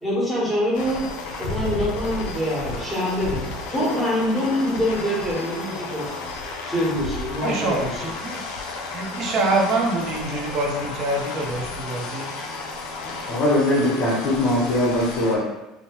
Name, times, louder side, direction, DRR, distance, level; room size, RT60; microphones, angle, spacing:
voice 1, 0.0-1.0 1.4-3.4 3.7-6.0 6.7-8.1, equal, 5° left, -7 dB, 1.3 m, -25 dB
sound 1, 0.7-15.3, left 3 dB, 75° left, 0.5 m, -33 dB
voice 2, 7.4-8.4 8.9-12.3, right 2 dB, 55° right, 0 dB, 0.7 m, -25 dB
voice 3, 13.0-15.4, left 1 dB, 55° left, -5 dB, 1.1 m, -21 dB
3.1 x 2.1 x 3.0 m, 0.96 s
supercardioid pair, 105°, 0 cm